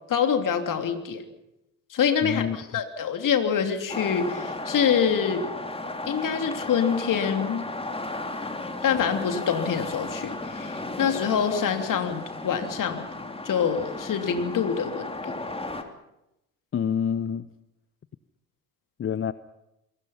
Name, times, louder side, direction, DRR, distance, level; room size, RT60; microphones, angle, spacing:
voice 1, 0.1-1.2 1.9-5.4 6.1-7.6 8.8-13.1 13.4-15.3, left 7 dB, 45° left, 6 dB, 3.2 m, -25 dB
voice 2, 2.2-2.6 16.7-17.4 19.0-19.3, left 8 dB, 30° left, 16 dB, 0.9 m, -27 dB
sound 1, 3.9-15.8, left 2 dB, 15° left, 3.1 m, -34 dB
27.5 x 22.0 x 5.8 m, 0.89 s
figure-of-eight pair, 50°, 44 cm